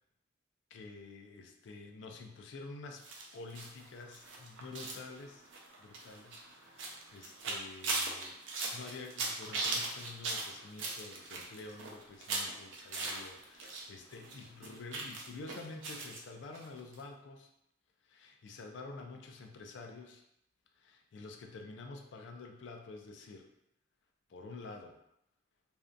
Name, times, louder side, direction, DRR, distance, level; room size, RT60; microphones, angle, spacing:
voice 1, 0.7-3.0 3.3-5.5 5.8-17.5 18.0-20.2 20.8-23.5 24.3-25.0, left 3 dB, 70° left, 3 dB, 0.3 m, -49 dB
sound 1, 3.0-13.8 14.1-16.2 16.5-16.7 16.9-17.0, right 3 dB, 85° right, 0.5 m, -39 dB
2.6 x 2.1 x 2.4 m, 0.82 s
head